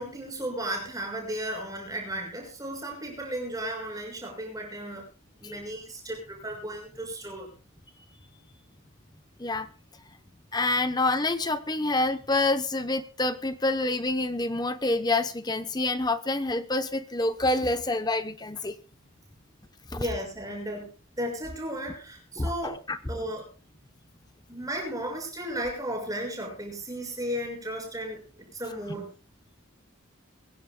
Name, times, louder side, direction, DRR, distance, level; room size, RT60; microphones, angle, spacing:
voice 1, 0.0-5.1 5.4-7.5 19.9-20.9 21.2-22.8 23.1-23.5 24.5-29.1, right 1 dB, 15° right, 2 dB, 6.2 m, -34 dB
voice 2, 10.5-18.8 19.9-20.0 22.4-23.0, left 2 dB, 20° left, 10 dB, 0.8 m, -27 dB
23.5 x 15.5 x 2.3 m, 0.32 s
head